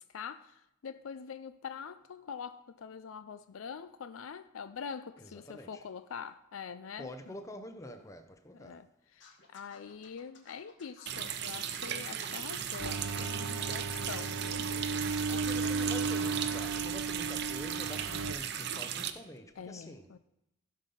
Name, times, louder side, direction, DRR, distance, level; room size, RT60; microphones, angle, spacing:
voice 1, 0.0-7.3 8.5-14.7 15.0-16.0 16.3-16.4 19.6-20.2, left 6 dB, 85° left, 0.4 m, -45 dB
voice 2, 5.2-5.8 7.0-8.8 15.3-20.1, equal, 15° left, 0.7 m, -46 dB
Scratching (performance technique), 9.2-13.6, left 4 dB, 60° left, 1.9 m, -56 dB
Water tap faucet, 11.1-19.1, right 9 dB, 55° right, 0.7 m, -37 dB
sound 1, 12.8-18.3, right 4 dB, 85° right, 0.7 m, -35 dB
16.0 x 5.4 x 5.5 m
head